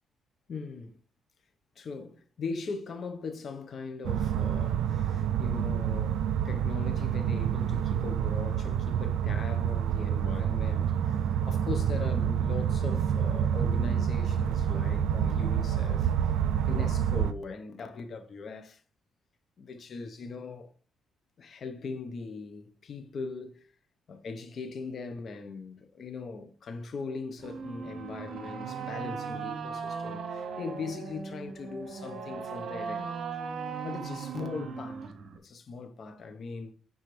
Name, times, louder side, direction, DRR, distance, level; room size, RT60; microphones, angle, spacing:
voice 1, 0.5-1.0 1.8-16.1 16.7-18.8 19.6-20.7 21.4-23.7 24.1-33.1 33.8-36.7, left 4 dB, 50° left, 1.1 m, -40 dB
sound 1, 4.0-17.3, right 9 dB, 90° right, 0.5 m, -28 dB
sound 2, 27.4-35.4, right 6 dB, 60° right, 1.0 m, -38 dB
10.5 x 4.1 x 3.4 m
cardioid pair, 90°, 0 cm